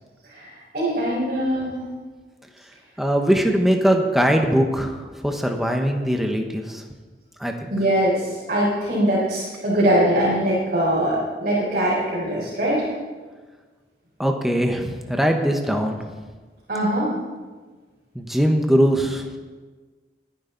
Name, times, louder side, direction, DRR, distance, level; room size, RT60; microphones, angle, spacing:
voice 1, 0.3-1.8 7.7-12.9 16.7-17.1, right 1 dB, 50° right, -8 dB, 4.5 m, -22 dB
voice 2, 3.0-4.9 5.2-6.8 7.4-7.7 14.2-16.0 18.1-19.2, equal, ahead, 3 dB, 1.1 m, -21 dB
21.5 x 10.0 x 4.0 m, 1.4 s
head